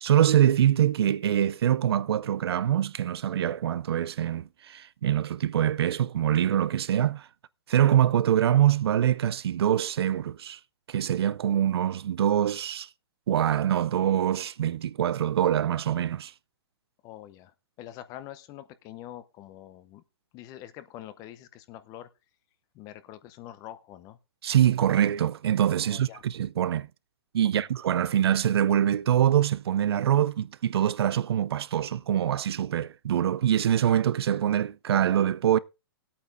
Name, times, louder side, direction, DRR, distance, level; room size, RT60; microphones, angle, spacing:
voice 1, 0.0-7.3 7.7-10.6 10.9-12.9 13.3-16.3 24.4-26.9 27.3-35.6, right 10 dB, 75° right, 0.4 m, -24 dB
voice 2, 17.0-20.0 20.3-22.1 22.7-24.2 25.8-26.2 27.6-27.7, left 13 dB, 25° left, 0.7 m, -45 dB
20.5 x 8.6 x 2.6 m
hypercardioid pair, 145°, 13 cm